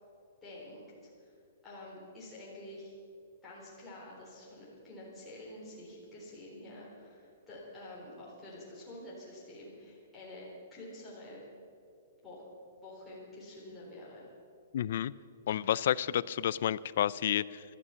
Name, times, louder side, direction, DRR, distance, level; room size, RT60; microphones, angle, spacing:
voice 1, 0.4-0.8 1.2-1.3 1.6-2.9 3.4-11.4 12.2-12.5 12.8-14.3, left 1 dB, 10° left, -8 dB, 3.7 m, -48 dB
voice 2, 14.7-15.1 15.5-17.6, left 10 dB, 55° left, 20 dB, 0.4 m, -30 dB
17.0 x 12.5 x 5.7 m, 2.4 s
hypercardioid pair, 170°, 0 cm